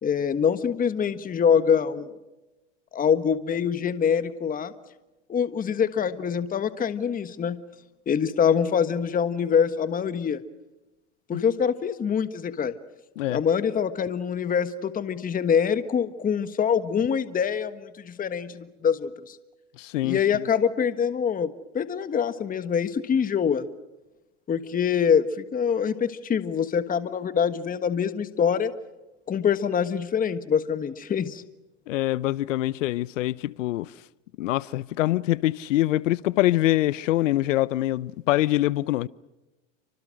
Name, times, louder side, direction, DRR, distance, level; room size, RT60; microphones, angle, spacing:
voice 1, 0.0-2.2 2.9-4.7 5.3-7.6 8.1-10.4 11.3-12.8 13.3-19.4 20.0-23.7 24.5-28.7 29.3-31.4, left 7 dB, 20° left, 1.4 m, -25 dB
voice 2, 19.8-20.4 31.9-33.9 34.4-39.1, left 16 dB, 80° left, 0.8 m, -24 dB
29.0 x 25.5 x 6.4 m
hypercardioid pair, 110°, 37 cm